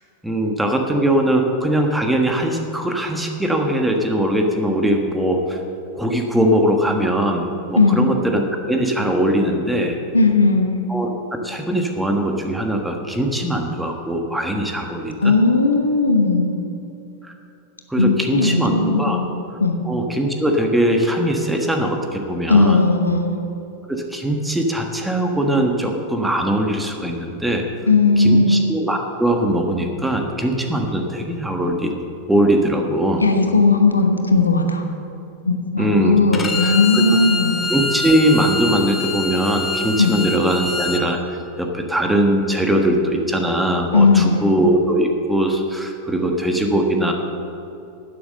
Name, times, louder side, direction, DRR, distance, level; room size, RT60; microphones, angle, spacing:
voice 1, 0.2-5.6 6.0-10.0 10.9-11.1 11.4-15.3 17.2-17.3 17.9-19.2 19.9-22.8 23.9-27.7 28.2-31.9 32.3-33.2 35.8-37.0 37.7-47.1, right 1 dB, 5° right, 3 dB, 1.4 m, -21 dB
voice 2, 10.1-10.8 15.2-16.5 18.0-19.8 22.5-23.4 27.9-28.6 33.2-34.8 35.4-37.6 40.0-40.2 43.9-44.5, left 3 dB, 80° left, 5 dB, 1.1 m, -16 dB
Bowed string instrument, 36.3-41.0, left 4 dB, 15° left, 1.2 m, -25 dB
11.5 x 9.8 x 6.6 m, 2.8 s
figure-of-eight pair, 90°, 0 cm